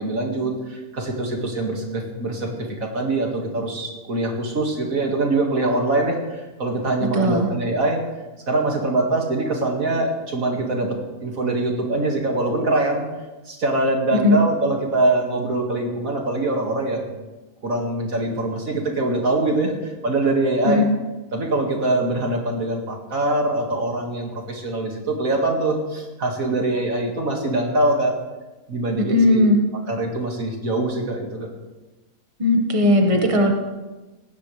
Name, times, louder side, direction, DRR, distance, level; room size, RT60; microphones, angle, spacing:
voice 1, 0.0-8.0 8.5-10.9 11.2-13.0 13.5-17.1 17.6-20.8 21.3-28.1 28.7-29.4 29.9-31.5, right 2 dB, 70° right, 1 dB, 2.6 m, -23 dB
voice 2, 7.0-7.5 14.1-14.4 20.6-20.8 29.0-29.6 32.4-33.5, left 2 dB, 25° right, 2 dB, 1.7 m, -18 dB
19.0 x 16.0 x 3.4 m, 1.1 s
omnidirectional pair, 1.5 m